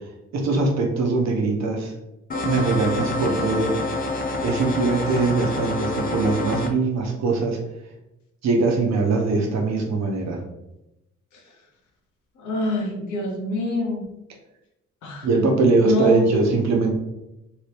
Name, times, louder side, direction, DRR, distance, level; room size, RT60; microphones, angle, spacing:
voice 1, 0.3-1.9 2.4-3.8 4.4-7.6 8.4-10.4 15.2-16.9, right 3 dB, 65° right, 1 dB, 0.9 m, -21 dB
sound 1, 2.3-6.7, left 2 dB, 30° left, 0.5 m, -27 dB
voice 2, 12.4-14.0 15.0-15.3 15.8-16.3, equal, 70° left, 2 dB, 1.0 m, -25 dB
3.1 x 2.9 x 3.3 m, 0.89 s
cardioid pair, 90°, 30 cm